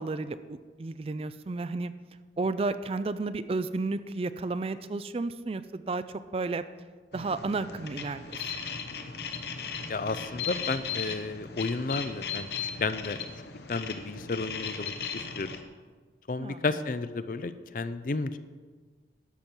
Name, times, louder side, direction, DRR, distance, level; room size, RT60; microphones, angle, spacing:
voice 1, 0.0-1.9 2.4-6.6 7.1-8.5 16.4-16.6, right 3 dB, 30° right, 13 dB, 0.3 m, -32 dB
sound 1, 7.1-15.6, left 6 dB, 65° left, 0.9 m, -37 dB
voice 2, 9.9-12.5 12.8-13.2 13.7-15.5 16.3-18.4, left 3 dB, 50° left, 12 dB, 0.5 m, -32 dB
12.0 x 7.1 x 6.0 m, 1.5 s
head